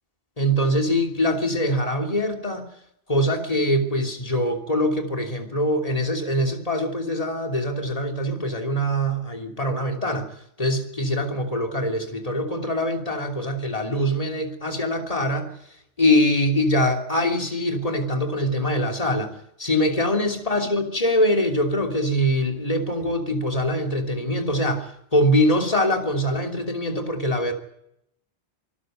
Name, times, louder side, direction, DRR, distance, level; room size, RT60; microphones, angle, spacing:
voice 1, 0.4-2.7 3.1-10.3 10.6-15.5 16.0-19.3 19.6-27.5, equal, 30° left, 3 dB, 3.2 m, -23 dB
26.5 x 13.5 x 9.2 m, 0.77 s
omnidirectional pair, 1.1 m